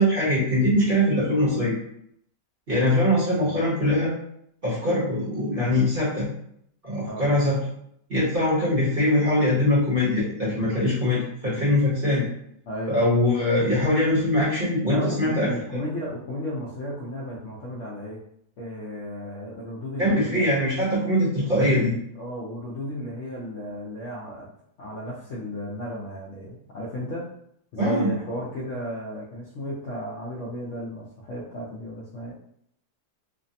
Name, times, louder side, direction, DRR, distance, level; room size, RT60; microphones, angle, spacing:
voice 1, 0.0-1.7 2.7-4.1 4.6-6.3 6.8-7.6 8.1-12.2 12.9-15.5 20.0-21.9 27.8-28.1, left 1 dB, 40° right, -8 dB, 0.9 m, -22 dB
voice 2, 14.8-18.2 18.6-20.5 21.6-21.7 22.2-24.5 24.8-27.3 27.7-32.3, equal, 65° left, -6 dB, 0.7 m, -34 dB
3.3 x 2.1 x 2.6 m, 0.71 s
omnidirectional pair, 1.8 m